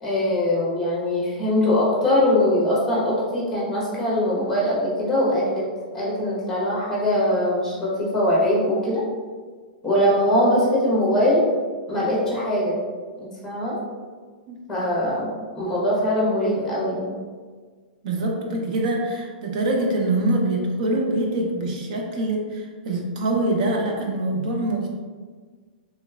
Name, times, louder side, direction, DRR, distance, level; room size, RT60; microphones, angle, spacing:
voice 1, 0.0-5.6 5.9-9.0 9.8-11.4 11.9-12.8 13.2-13.8 14.7-17.1, left 1 dB, 5° left, -6 dB, 1.0 m, -22 dB
voice 2, 18.0-24.9, right 1 dB, 50° right, 0 dB, 0.6 m, -24 dB
3.2 x 3.0 x 2.3 m, 1.5 s
hypercardioid pair, 155°, 5 cm